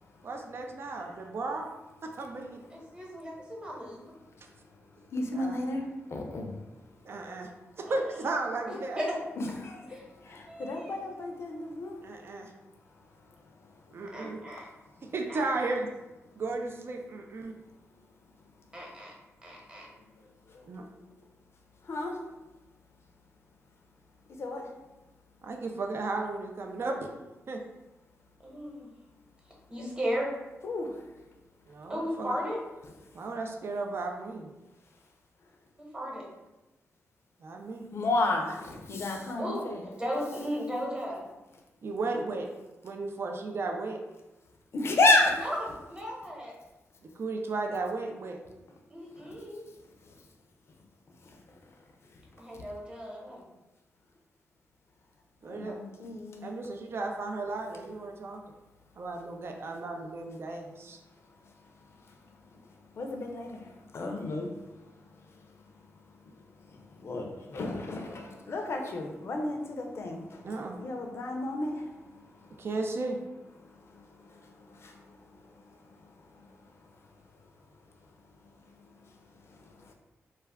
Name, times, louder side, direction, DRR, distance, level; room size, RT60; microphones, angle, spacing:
voice 1, 0.2-1.7 2.0-2.6 5.3-5.7 7.0-7.5 7.8-9.0 12.0-12.5 13.9-14.4 15.0-15.9 16.4-17.5 20.7-20.8 25.4-27.1 27.5-27.6 31.7-32.4 33.1-34.5 37.4-37.9 41.8-42.5 42.8-44.0 47.2-48.4 55.4-55.8 56.1-58.4 59.0-61.0 70.4-70.8 72.6-73.2, right 3 dB, 55° right, 3 dB, 0.4 m, -34 dB
voice 2, 2.7-4.0 7.9-8.0 8.7-9.1 9.9-10.0 10.5-11.0 14.1-14.6 15.3-15.7 18.7-19.1 19.4-19.9 28.4-28.9 29.7-30.3 31.9-32.6 35.8-36.2 39.4-41.3 45.3-46.5 48.9-49.6 52.4-53.4, equal, 20° right, -3 dB, 1.0 m, -36 dB
voice 3, 5.1-5.8 6.1-6.5 9.4-9.8 10.2-12.0 21.9-22.2 24.4-24.7 30.6-30.9 37.9-39.8 44.7-45.4 55.5-56.5 63.0-63.6 63.9-64.5 67.0-70.4 70.8-71.8 74.8-75.0, left 2 dB, 60° left, 3 dB, 0.5 m, -31 dB
2.3 x 2.2 x 3.4 m, 1.1 s
cardioid pair, 60°, 5 cm